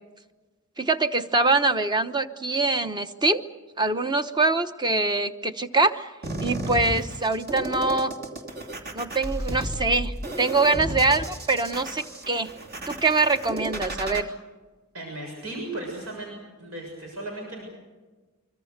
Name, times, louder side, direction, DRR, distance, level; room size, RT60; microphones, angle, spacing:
voice 1, 0.8-3.4 3.8-6.1 6.4-8.1 8.9-12.5 12.9-14.3, right 3 dB, 20° right, 9 dB, 1.0 m, -24 dB
sound 1, 6.2-14.2, right 1 dB, 50° right, 2.9 m, -33 dB
voice 2, 14.9-17.6, right 2 dB, 80° right, 0 dB, 6.9 m, -36 dB
25.0 x 25.0 x 6.6 m, 1.3 s
head